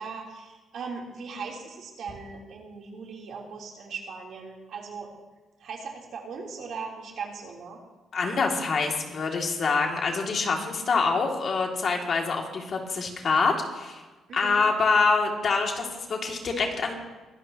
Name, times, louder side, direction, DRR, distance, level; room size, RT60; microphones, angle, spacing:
voice 1, 0.0-5.1 5.6-7.8 14.3-14.7, right 5 dB, 70° right, -1 dB, 3.4 m, -39 dB
voice 2, 8.1-14.0 14.3-16.9, left 4 dB, 50° left, 1 dB, 2.4 m, -25 dB
22.5 x 12.5 x 2.9 m, 1.2 s
cardioid pair, 90°, 0 cm